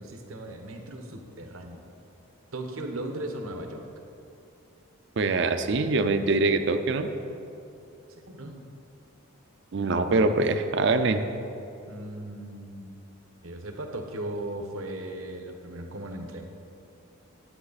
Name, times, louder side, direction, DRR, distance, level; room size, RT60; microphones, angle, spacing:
voice 1, 0.0-1.8 2.5-3.9 8.1-8.6 11.9-12.9 13.4-16.5, right 1 dB, 80° right, 4 dB, 1.1 m, -37 dB
voice 2, 5.2-7.1 9.7-11.2, right 3 dB, 55° right, 8 dB, 0.5 m, -24 dB
11.5 x 8.7 x 4.1 m, 2.7 s
head